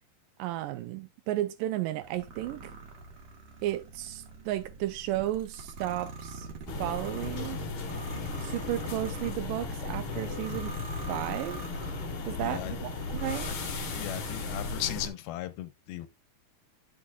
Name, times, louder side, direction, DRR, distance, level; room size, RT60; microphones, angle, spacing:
voice 1, 0.4-2.7 3.6-6.5 6.8-7.6 8.4-10.7 11.1-11.6 12.2-13.5, right 14 dB, 90° right, 1.9 m, -33 dB
sound 1, 2.0-12.3 12.9-14.5, right 3 dB, 55° right, 2.3 m, -46 dB
sound 2, 6.7-15.1, left 3 dB, 65° left, 1.3 m, -36 dB
voice 2, 12.4-12.7 14.0-16.1, left 13 dB, 80° left, 2.5 m, -36 dB
10.0 x 6.3 x 2.3 m
omnidirectional pair, 4.5 m